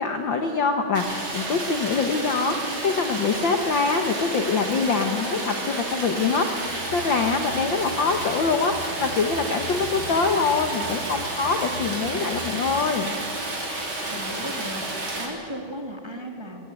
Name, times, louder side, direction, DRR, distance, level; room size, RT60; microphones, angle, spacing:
voice 1, 0.0-13.2, left 4 dB, 55° left, 5 dB, 1.3 m, -24 dB
Stream, 0.9-15.3, right 2 dB, 40° right, 4.7 m, -31 dB
sound 1, 6.7-13.0, right 3 dB, 65° right, 2.9 m, -41 dB
voice 2, 14.1-16.6, equal, 10° right, 2 dB, 1.6 m, -36 dB
25.5 x 19.0 x 9.0 m, 2.7 s
omnidirectional pair, 3.6 m